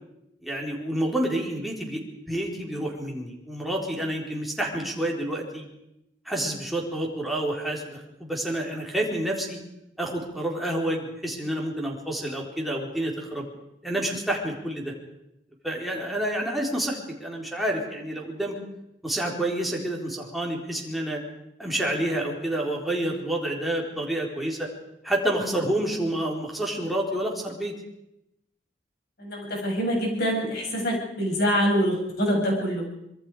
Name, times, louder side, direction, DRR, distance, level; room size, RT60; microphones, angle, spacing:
voice 1, 0.4-5.7 6.3-9.6 10.0-13.4 13.8-14.9 15.6-18.6 19.0-21.2 21.6-24.7 25.0-27.7, right 1 dB, ahead, -2 dB, 4.1 m, -29 dB
voice 2, 29.2-32.9, equal, 60° left, -1 dB, 7.7 m, -25 dB
25.5 x 23.5 x 5.0 m, 0.84 s
head